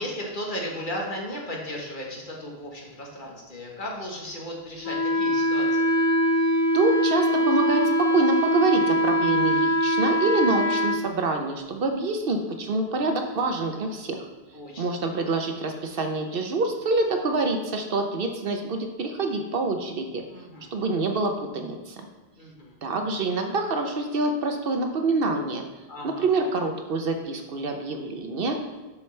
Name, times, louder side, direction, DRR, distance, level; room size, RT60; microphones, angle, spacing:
voice 1, 0.0-5.9 14.5-15.0 20.3-20.7 22.3-22.8 25.9-26.3, equal, 50° left, -1 dB, 1.5 m, -35 dB
Wind instrument woodwind instrument, 4.8-11.0, equal, 25° left, 0.4 m, -22 dB
voice 2, 6.7-14.2 14.8-20.2 20.7-22.1 22.8-25.6 26.0-28.6, right 3 dB, 65° right, 5 dB, 0.9 m, -26 dB
7.6 x 6.2 x 3.2 m, 1.2 s
omnidirectional pair, 1.1 m